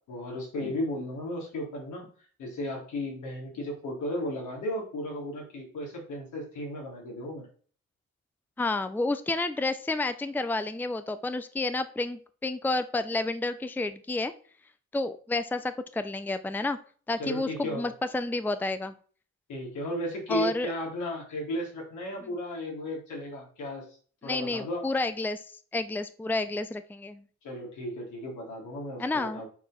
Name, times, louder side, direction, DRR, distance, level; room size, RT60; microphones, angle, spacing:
voice 1, 0.1-2.1 2.4-7.5 17.2-17.9 19.5-23.9 24.2-24.9 27.4-29.5, left 1 dB, 75° left, -1 dB, 3.5 m, -35 dB
voice 2, 8.6-14.3 14.9-16.8 17.1-18.9 20.3-20.7 24.2-25.4 25.7-27.2 29.0-29.4, left 2 dB, 5° left, 12 dB, 0.6 m, -30 dB
6.9 x 4.5 x 5.8 m, 0.43 s
cardioid pair, 90°, 30 cm